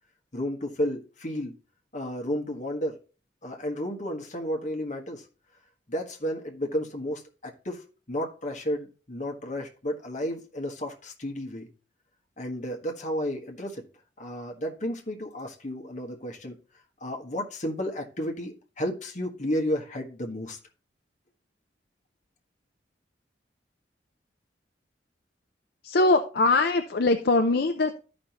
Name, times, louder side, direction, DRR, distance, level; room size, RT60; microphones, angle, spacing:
voice 1, 0.3-1.5 1.9-2.9 3.4-5.2 5.9-11.7 12.4-13.8 14.2-16.6 17.0-20.6, equal, 40° left, 1.4 m, -32 dB
voice 2, 25.8-27.9, left 3 dB, 60° left, 0.6 m, -22 dB
13.5 x 5.3 x 3.0 m
head